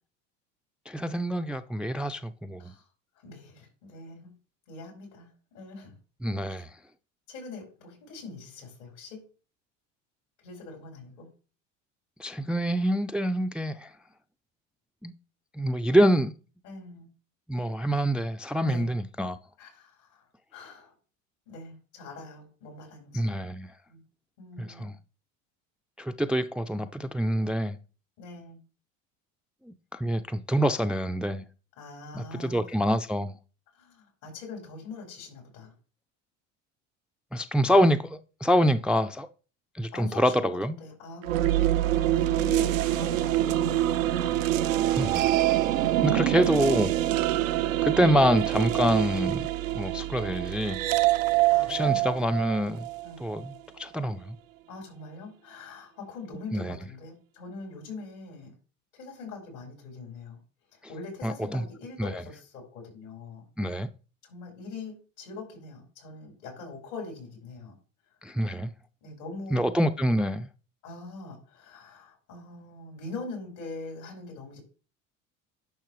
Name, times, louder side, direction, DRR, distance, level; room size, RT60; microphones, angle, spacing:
voice 1, 0.9-2.7 6.2-6.7 12.2-13.9 15.0-15.1 15.5-16.3 17.5-19.4 23.1-23.7 24.6-25.0 26.0-27.8 29.7-31.4 32.1-33.4 37.3-39.3 39.7-40.8 44.9-45.3 46.0-47.0 47.8-49.5 49.7-50.8 51.7-52.9 53.2-54.4 56.5-56.8 61.2-61.7 62.0-62.1 63.6-63.9 68.2-68.7 69.5-70.5, equal, 5° right, 0.4 m, -26 dB
voice 2, 3.2-4.3 4.7-5.3 5.5-5.9 7.3-9.2 10.4-11.3 16.6-17.1 18.6-18.8 19.6-20.2 20.5-20.9 21.5-23.3 23.9-24.0 24.4-24.9 28.2-28.6 31.8-32.6 33.8-35.7 39.9-44.6 46.1-46.5 47.5-47.8 51.1-51.2 51.5-52.4 53.0-53.2 54.7-58.5 59.0-60.4 60.9-63.4 64.3-67.7 69.0-69.7 70.8-74.6, left 3 dB, 75° left, 4.9 m, -43 dB
sound 1, 41.2-53.4, right 14 dB, 90° right, 0.6 m, -25 dB
10.5 x 5.6 x 3.1 m
hypercardioid pair, 80°, 38 cm